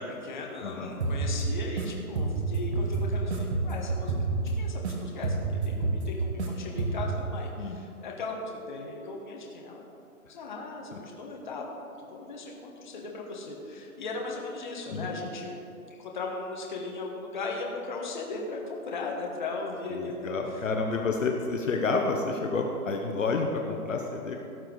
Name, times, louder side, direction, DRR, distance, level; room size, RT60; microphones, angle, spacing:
voice 1, 0.0-4.1 4.5-5.4 5.6-9.8 10.3-11.7 12.0-15.6 16.0-20.6 20.9-21.2, left 3 dB, 30° left, -1 dB, 1.4 m, -37 dB
voice 2, 0.6-1.0 7.6-7.8 10.9-11.0 14.9-15.1 20.0-24.4, left 3 dB, 60° left, 2 dB, 1.1 m, -29 dB
sound 1, 1.0-1.9 2.2-4.9 5.2-6.5 6.8-7.2, right 3 dB, 45° right, 1.6 m, -29 dB
17.5 x 6.9 x 4.0 m, 2.7 s
hypercardioid pair, 175°, 44 cm